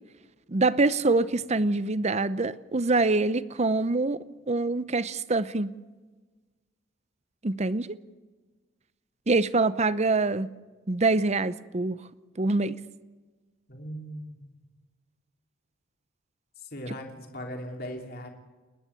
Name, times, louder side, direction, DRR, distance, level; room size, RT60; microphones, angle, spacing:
voice 1, 0.5-4.2 4.5-5.7 7.4-7.9 9.3-10.5 10.9-12.0 12.4-12.8, right 3 dB, 35° right, 16 dB, 0.7 m, -25 dB
voice 2, 13.7-14.7 16.6-18.3, equal, 50° left, 2 dB, 2.9 m, -39 dB
30.0 x 10.5 x 8.4 m, 1.3 s
head